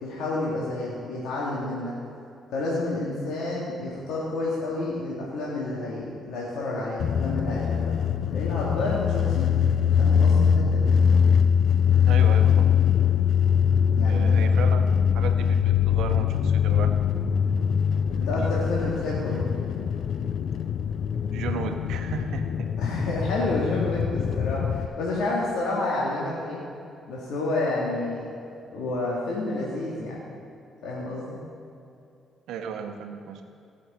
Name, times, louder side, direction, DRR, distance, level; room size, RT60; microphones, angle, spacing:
voice 1, 0.0-1.9 2.5-7.9 8.3-9.5 10.0-10.9 13.9-14.4 18.1-19.4 22.8-26.6 27.1-28.3 28.7-30.2 30.8-31.4, left 2 dB, 85° left, -6 dB, 2.0 m, -29 dB
sound 1, 7.0-24.9, left 7 dB, 70° left, 0.5 m, -22 dB
voice 2, 12.0-12.8 14.0-16.9 18.4-18.6 21.3-22.7 32.5-33.4, right 6 dB, 85° right, 6 dB, 0.9 m, -35 dB
17.5 x 6.5 x 4.3 m, 2.6 s
cardioid pair, 90°, 0 cm